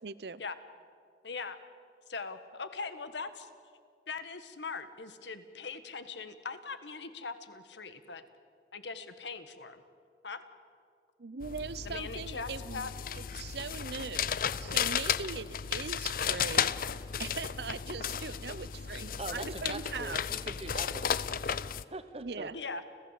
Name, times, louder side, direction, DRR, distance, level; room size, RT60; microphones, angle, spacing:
voice 1, 0.0-0.4 11.2-14.3 14.6-16.7 17.2-20.2 22.2-22.6, right 4 dB, 65° right, 18 dB, 0.7 m, -40 dB
voice 2, 1.2-1.6 2.1-3.5 4.1-8.2 8.7-9.8 10.2-10.4 11.8-12.9 22.5-22.8, left 4 dB, 80° left, 10 dB, 1.5 m, -41 dB
sound 1, 11.4-21.8, left 8 dB, 50° left, 0.5 m, -34 dB
voice 3, 19.2-21.1 21.4-21.6 21.9-22.5, right 2 dB, 35° right, 10 dB, 1.2 m, -42 dB
29.5 x 15.0 x 8.3 m, 2.3 s
head